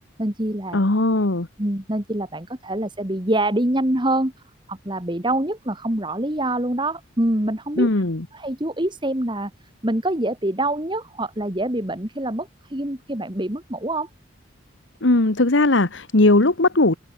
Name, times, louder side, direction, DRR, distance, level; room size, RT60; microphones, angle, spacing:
voice 1, 0.2-0.8 1.6-4.3 4.7-7.9 8.3-9.5 9.8-14.1, right 1 dB, 25° right, 2.2 m, -25 dB
voice 2, 0.7-1.5 7.8-8.3 15.0-16.9, left 2 dB, 70° left, 1.5 m, -18 dB
head